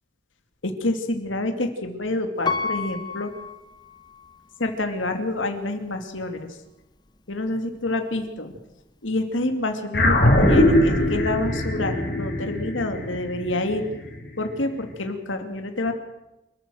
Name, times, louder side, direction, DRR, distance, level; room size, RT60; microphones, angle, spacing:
voice 1, 0.6-3.3 4.6-6.6 7.3-8.6 9.0-10.2 10.5-13.8 14.4-15.9, left 2 dB, 90° left, 6 dB, 2.5 m, -27 dB
Piano, 2.5-4.4 5.0-5.1, left 5 dB, 20° left, 1.3 m, -30 dB
sound 1, 9.9-14.6, left 1 dB, 50° left, 6.0 m, -21 dB
28.0 x 14.0 x 7.9 m, 0.95 s
head